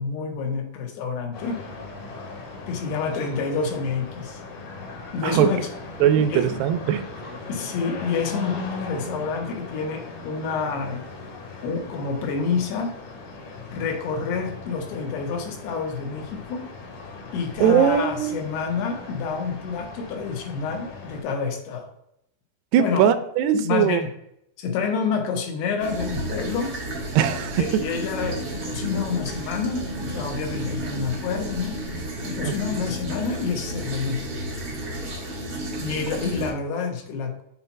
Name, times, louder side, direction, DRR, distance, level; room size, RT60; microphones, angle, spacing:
voice 1, 0.0-1.6 2.7-4.4 5.1-5.7 6.3-6.6 7.5-11.0 11.6-13.0 13.7-16.7 17.3-21.9 22.8-23.1 23.5-24.1 24.6-26.8 27.5-31.8 32.3-34.2 35.8-37.4, left 5 dB, 80° left, 3 dB, 3.2 m, -28 dB
sound 1, 1.3-21.2, left 3 dB, 65° left, 2.7 m, -38 dB
voice 2, 6.0-7.0 17.6-18.4 22.7-24.0 27.2-27.8 32.4-32.5, right 9 dB, 85° right, 11 dB, 2.6 m, -20 dB
sound 2, 25.8-36.5, right 1 dB, 60° right, 0.8 m, -32 dB
7.7 x 2.8 x 5.7 m, 0.77 s
omnidirectional pair, 4.6 m